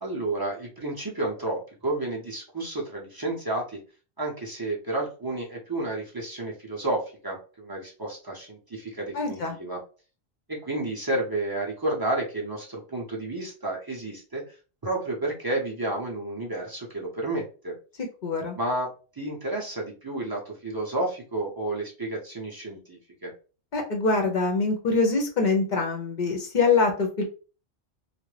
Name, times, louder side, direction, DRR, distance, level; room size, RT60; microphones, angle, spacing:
voice 1, 0.0-3.8 4.2-9.8 10.5-14.5 14.8-17.7 18.6-18.9 19.1-23.3, right 2 dB, 30° right, -2 dB, 0.4 m, -31 dB
voice 2, 9.1-9.6 18.2-18.6 23.7-27.2, left 4 dB, 55° left, 2 dB, 0.6 m, -24 dB
2.3 x 2.0 x 3.1 m, 0.35 s
omnidirectional pair, 1.1 m